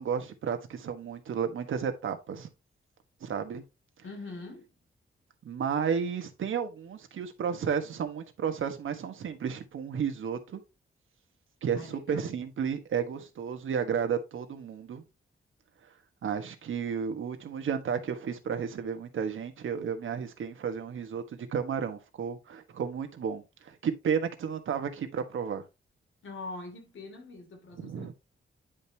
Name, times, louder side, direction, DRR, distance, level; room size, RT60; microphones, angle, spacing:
voice 1, 0.0-2.5 3.2-3.6 5.4-10.6 11.6-15.0 16.2-25.6 27.8-28.1, right 7 dB, 80° right, 1.4 m, -32 dB
voice 2, 4.0-4.7 11.7-12.4 26.2-28.1, left 3 dB, 75° left, 2.8 m, -43 dB
10.0 x 5.3 x 2.9 m
wide cardioid pair, 170°, 20 cm